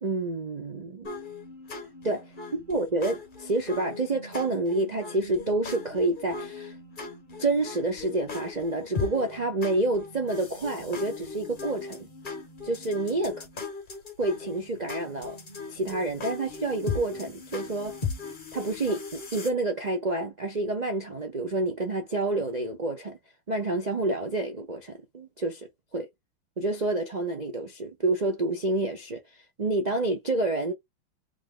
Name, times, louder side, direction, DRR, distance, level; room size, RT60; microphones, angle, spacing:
voice 1, 0.0-1.1 2.0-2.2 2.5-6.7 7.4-12.1 12.6-13.5 14.2-15.4 15.7-18.0 18.5-23.2 23.5-25.7 25.9-26.1 26.6-29.2 29.6-30.7, right 2 dB, 85° right, 0.3 m, -28 dB
sound 1, 1.0-19.5, left 4 dB, 35° left, 0.9 m, -38 dB
3.7 x 3.0 x 3.7 m
omnidirectional pair, 2.2 m